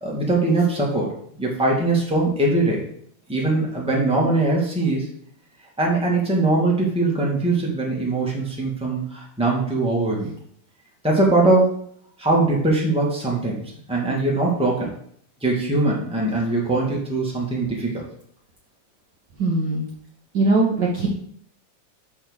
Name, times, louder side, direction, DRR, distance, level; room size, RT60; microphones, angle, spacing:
voice 1, 0.0-1.1 1.4-2.8 3.3-5.1 5.8-10.3 11.0-11.7 12.2-13.6 13.9-14.9 15.4-18.0, right 2 dB, 5° right, -3 dB, 0.7 m, -21 dB
voice 2, 19.4-19.9 20.3-21.1, right 2 dB, 75° right, -3 dB, 1.0 m, -20 dB
7.3 x 3.6 x 6.2 m, 0.65 s
omnidirectional pair, 3.4 m